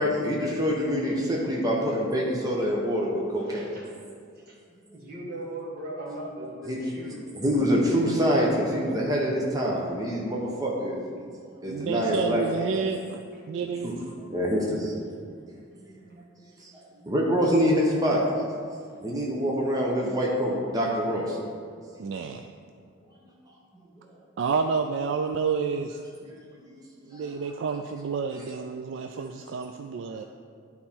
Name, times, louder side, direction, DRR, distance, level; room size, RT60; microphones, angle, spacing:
voice 1, 0.0-3.7 6.7-6.8 7.3-11.0 11.6-12.4 13.8-14.0 14.3-14.9 15.3-15.4 15.8-16.2 16.6-18.2 19.0-21.4 26.3-26.4 26.7-26.8 27.1-27.3, equal, 20° right, -3 dB, 0.8 m, -26 dB
voice 2, 3.5-3.9 4.5-4.6 4.9-7.2 11.1-11.2 13.4-13.5 16.1-16.2, right 1 dB, 50° right, -4 dB, 1.6 m, -38 dB
voice 3, 11.7-13.2 13.5-13.9 22.0-22.4 24.4-26.0 27.1-30.2, right 5 dB, 65° right, 6 dB, 0.3 m, -29 dB
11.0 x 4.2 x 4.3 m, 2.2 s
head